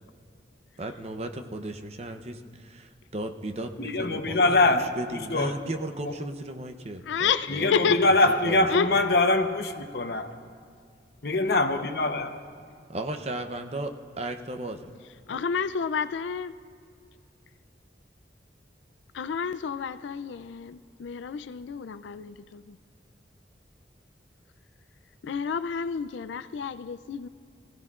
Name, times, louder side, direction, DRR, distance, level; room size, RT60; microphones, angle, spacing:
voice 1, 0.8-8.2 8.4-9.0 12.9-14.9, right 1 dB, 35° right, 6 dB, 0.7 m, -36 dB
voice 2, 3.8-4.9 5.1-5.6 6.0-6.1 7.5-10.3 11.2-12.4, left 2 dB, 60° left, 6 dB, 0.8 m, -23 dB
voice 3, 7.1-8.0 8.7-8.9 15.3-16.5 19.1-22.8 25.2-27.3, left 6 dB, 85° left, 14 dB, 0.4 m, -30 dB
23.5 x 16.0 x 2.4 m, 2.3 s
head